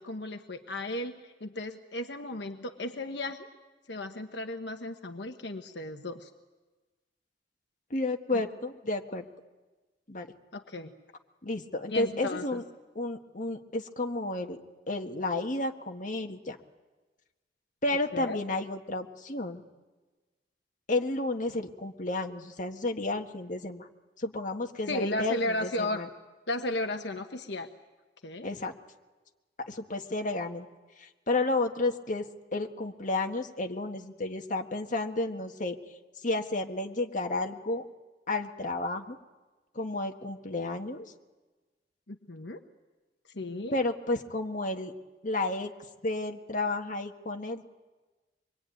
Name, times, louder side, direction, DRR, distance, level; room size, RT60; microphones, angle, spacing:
voice 1, 0.0-3.5 3.9-6.3 10.5-10.9 11.9-12.6 18.1-18.4 24.9-26.0 26.5-27.7 28.2-28.5 42.1-42.6 43.3-43.8, left 1 dB, 70° left, 5 dB, 1.3 m, -35 dB
voice 2, 7.9-9.2 10.1-10.3 11.4-12.6 12.9-14.6 14.9-16.6 17.8-19.6 20.9-23.9 24.2-26.1 28.4-28.7 29.6-30.7 31.0-35.8 36.2-37.8 38.3-39.2 39.7-41.1 43.7-44.9 45.2-45.7 46.0-47.6, left 2 dB, 45° left, 3 dB, 1.6 m, -32 dB
25.5 x 22.0 x 9.3 m, 1.2 s
head